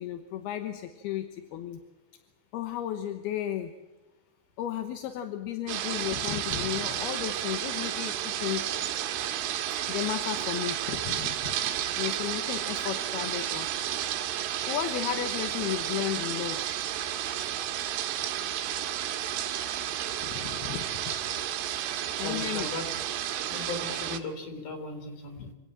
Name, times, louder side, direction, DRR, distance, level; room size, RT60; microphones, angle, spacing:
voice 1, 0.0-1.8 2.5-3.7 4.6-8.7 9.9-11.6 12.0-13.8 14.7-16.7 20.2-21.1 22.1-22.7 25.4-25.5, left 11 dB, 70° left, 8 dB, 2.7 m, -34 dB
sound 1, 5.7-24.2, right 11 dB, 85° right, 4.1 m, -32 dB
voice 2, 22.2-22.9 23.5-25.5, left 3 dB, 45° left, 6 dB, 4.8 m, -37 dB
26.5 x 17.5 x 7.4 m, 1.1 s
omnidirectional pair, 5.5 m